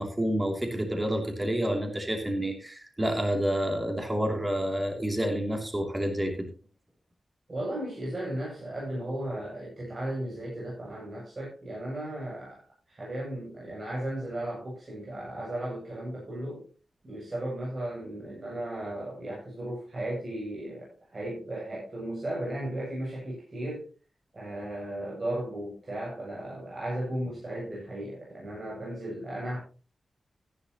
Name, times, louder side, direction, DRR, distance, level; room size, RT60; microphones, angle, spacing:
voice 1, 0.0-6.5, equal, 20° right, 3 dB, 2.9 m, -29 dB
voice 2, 7.5-12.6 12.9-16.6 17.0-23.9 24.3-29.6, right 1 dB, 40° right, -5 dB, 7.6 m, -35 dB
14.5 x 11.0 x 3.0 m, 0.36 s
wide cardioid pair, 80°, 0 cm